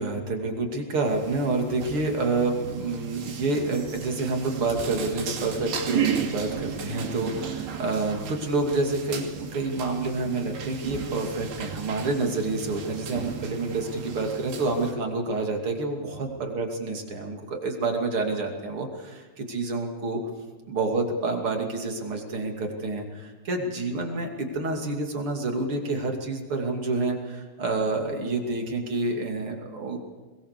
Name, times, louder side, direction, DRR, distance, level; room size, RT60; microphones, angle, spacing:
voice 1, 0.0-20.2 20.7-30.0, right 3 dB, 35° right, 2 dB, 3.1 m, -28 dB
sound 1, 1.0-14.9, right 8 dB, 80° right, 4.4 m, -34 dB
21.5 x 20.5 x 6.8 m, 1.3 s
omnidirectional pair, 4.7 m